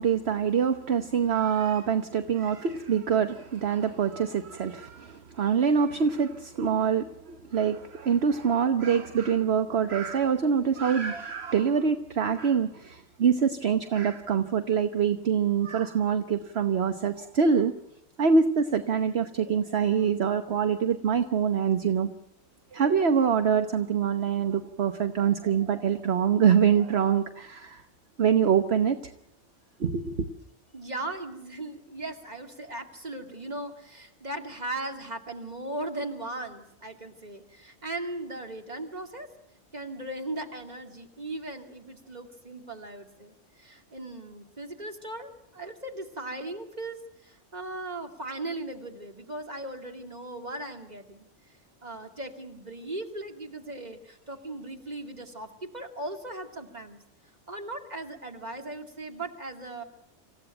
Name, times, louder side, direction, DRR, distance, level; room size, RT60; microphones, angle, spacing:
voice 1, 0.0-17.7 18.2-22.1 22.7-27.8 28.2-29.0 29.8-30.3, right 7 dB, 60° right, 8 dB, 1.3 m, -25 dB
voice 2, 30.7-39.3 39.7-51.3 51.8-57.0 57.5-59.8, right 2 dB, 35° right, 4 dB, 2.6 m, -38 dB
27.0 x 15.5 x 9.0 m, 0.81 s
omnidirectional pair, 1.2 m